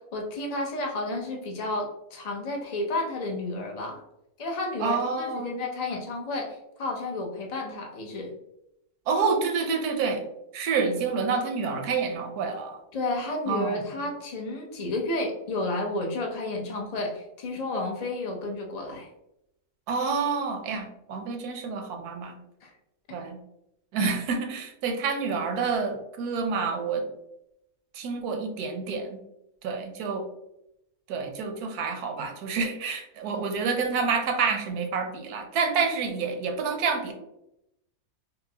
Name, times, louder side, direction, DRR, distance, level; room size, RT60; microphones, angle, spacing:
voice 1, 0.0-4.0 4.4-8.3 12.9-19.1 22.6-22.7, left 2 dB, 45° left, 1 dB, 0.5 m, -31 dB
voice 2, 4.8-5.6 9.1-10.2 10.5-12.8 13.5-13.8 19.9-22.4 23.1-23.4 23.9-27.1 27.9-29.2 29.6-30.3 31.1-37.1, right 5 dB, 80° right, 4 dB, 1.2 m, -28 dB
5.3 x 2.1 x 2.8 m, 0.83 s
omnidirectional pair, 1.6 m